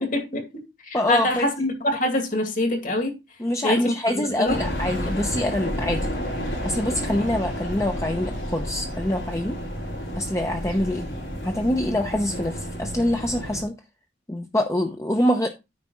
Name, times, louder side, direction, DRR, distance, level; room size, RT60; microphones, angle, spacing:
voice 1, 0.0-3.2 3.6-4.6, left 1 dB, 50° left, 2.3 m, -25 dB
voice 2, 0.9-1.5 3.4-6.1 6.6-9.6 10.2-11.1 11.4-13.7 14.3-15.5, left 1 dB, 15° left, 0.8 m, -25 dB
sound 1, 4.5-13.6, equal, 80° left, 4.8 m, -31 dB
9.5 x 3.4 x 6.3 m
head